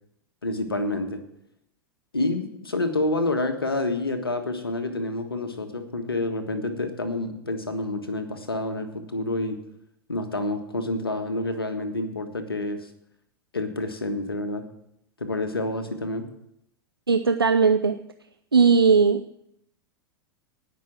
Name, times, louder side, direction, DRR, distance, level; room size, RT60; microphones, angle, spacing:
voice 1, 0.4-1.2 2.1-9.6 10.1-12.9 13.5-14.7 15.2-16.3, left 2 dB, 85° left, 7 dB, 1.6 m, -28 dB
voice 2, 17.1-18.0 18.5-19.2, right 5 dB, 85° right, 8 dB, 0.6 m, -18 dB
18.5 x 6.2 x 6.1 m, 0.77 s
figure-of-eight pair, 95°, 12 cm